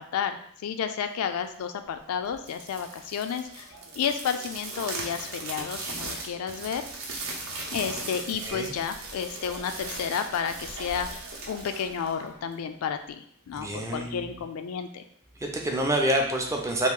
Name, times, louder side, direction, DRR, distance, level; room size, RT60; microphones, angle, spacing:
voice 1, 0.0-3.7 4.0-6.8 7.7-11.1 11.5-15.0, left 7 dB, 80° left, 8 dB, 0.3 m, -31 dB
sound 1, 2.3-12.7, right 3 dB, 65° right, 0.7 m, -38 dB
voice 2, 8.5-8.8 13.5-14.3 15.4-16.9, right 1 dB, 15° right, 2 dB, 0.4 m, -27 dB
2.9 x 2.4 x 3.7 m, 0.64 s
head